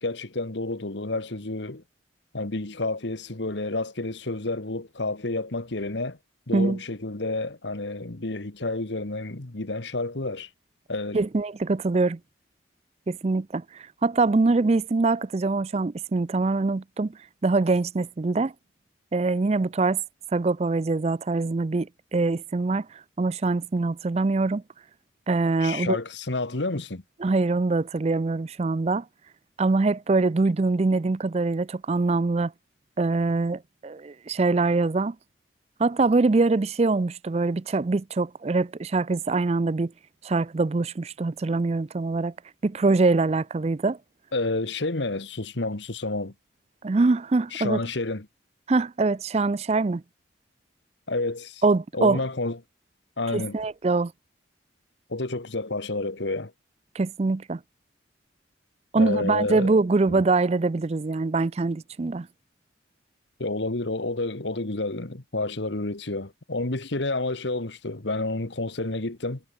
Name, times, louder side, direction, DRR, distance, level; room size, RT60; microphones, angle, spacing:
voice 1, 0.0-1.8 2.3-6.2 6.5-10.5 10.9-11.2 25.6-27.0 44.3-46.3 47.5-48.3 51.1-51.6 51.9-52.6 53.2-53.6 55.1-56.5 58.9-59.7 60.1-60.2 63.4-69.4, left 2 dB, 70° left, 1.6 m, -30 dB
voice 2, 11.1-12.2 13.1-18.5 19.1-20.0 20.3-24.6 25.3-26.0 27.2-29.0 29.6-32.5 33.0-35.2 35.8-39.9 40.2-42.3 42.6-44.0 46.8-47.8 48.7-50.0 51.6-52.2 53.3-54.1 56.9-57.6 58.9-62.3, right 3 dB, 35° right, 0.4 m, -24 dB
head